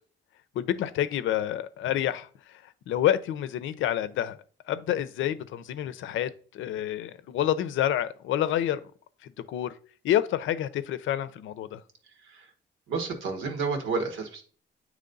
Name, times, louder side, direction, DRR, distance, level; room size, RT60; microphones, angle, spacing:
voice 1, 0.5-4.4 4.7-8.9 9.2-9.7 10.0-11.8, left 11 dB, 80° left, 0.6 m, -28 dB
voice 2, 12.0-12.5 12.9-14.4, right 4 dB, 90° right, 1.4 m, -31 dB
8.6 x 3.1 x 3.9 m
cardioid pair, 90°, 20 cm